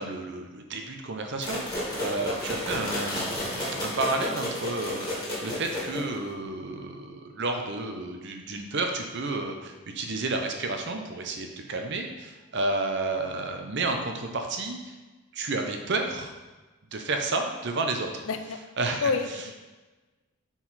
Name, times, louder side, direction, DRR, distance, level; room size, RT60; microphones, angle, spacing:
voice 1, 0.0-14.9 15.3-16.3 16.9-18.3 18.8-19.1, right 2 dB, 55° right, 4 dB, 0.8 m, -31 dB
sound 1, 1.4-6.3, left 1 dB, 20° left, 2.0 m, -32 dB
voice 2, 18.3-18.6 19.0-19.5, left 4 dB, 70° left, 8 dB, 0.5 m, -28 dB
5.6 x 4.8 x 4.2 m, 1.2 s
head